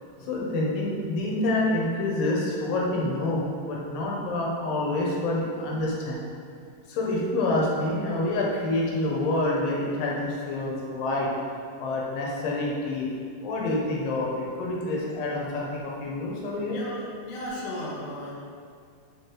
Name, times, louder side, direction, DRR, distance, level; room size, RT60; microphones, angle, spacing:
voice 1, 0.2-6.2 6.9-11.3 11.8-13.1 13.4-14.3 14.6-16.8, left 2 dB, 90° left, -3 dB, 2.8 m, -27 dB
voice 2, 16.6-18.4, left 1 dB, 65° left, -5 dB, 1.9 m, -35 dB
5.3 x 5.1 x 4.6 m, 2.2 s
omnidirectional pair, 3.8 m